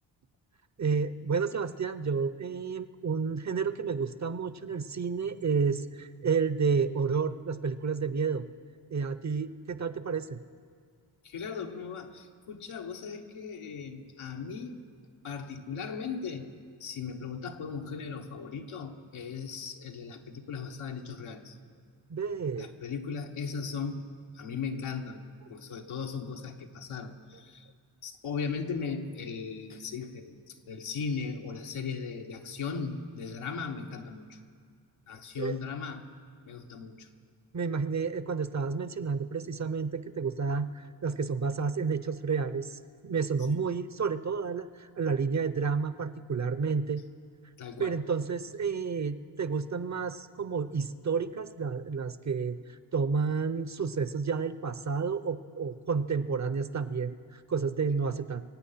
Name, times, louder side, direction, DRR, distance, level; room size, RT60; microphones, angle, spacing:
voice 1, 0.8-8.4 8.9-10.4 22.1-22.7 35.4-35.6 37.5-47.0 47.8-58.4, right 5 dB, 35° right, 13 dB, 0.8 m, -30 dB
voice 2, 11.2-14.8 15.2-16.5 16.8-21.6 22.6-24.1 24.3-27.7 28.0-34.4 35.1-36.0 36.4-37.1 43.5-43.6 47.6-48.0, left 5 dB, 75° left, 3 dB, 1.4 m, -37 dB
24.5 x 8.4 x 5.8 m, 2.2 s
supercardioid pair, 50°, 49 cm